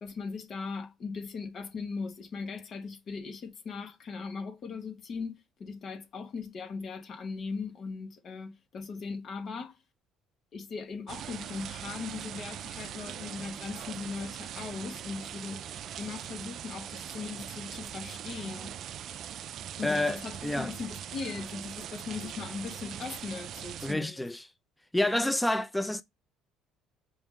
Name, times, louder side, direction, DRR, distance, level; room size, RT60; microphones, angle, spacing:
voice 1, 0.0-9.8 10.5-15.6 16.0-18.7 19.8-24.2, left 4 dB, 45° left, 1.1 m, -39 dB
sound 1, 11.1-23.9, right 10 dB, 55° right, 0.3 m, -41 dB
voice 2, 19.8-20.2 20.4-20.7 23.8-24.4 24.9-26.0, left 1 dB, 5° left, 0.5 m, -28 dB
4.9 x 2.6 x 3.6 m
supercardioid pair, 90°, 0 cm